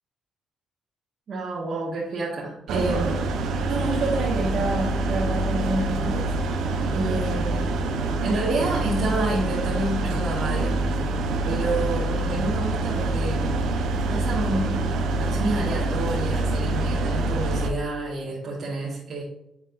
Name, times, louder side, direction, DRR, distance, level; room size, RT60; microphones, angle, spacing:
voice 1, 1.3-6.3 6.9-7.8 8.2-10.8 11.4-13.6 14.1-14.9 15.2-19.2, right 2 dB, 55° right, -6 dB, 1.7 m, -29 dB
sound 1, 2.7-17.7, right 2 dB, 80° right, 0.9 m, -25 dB
7.9 x 5.8 x 2.6 m, 0.84 s
cardioid pair, 90°, 0 cm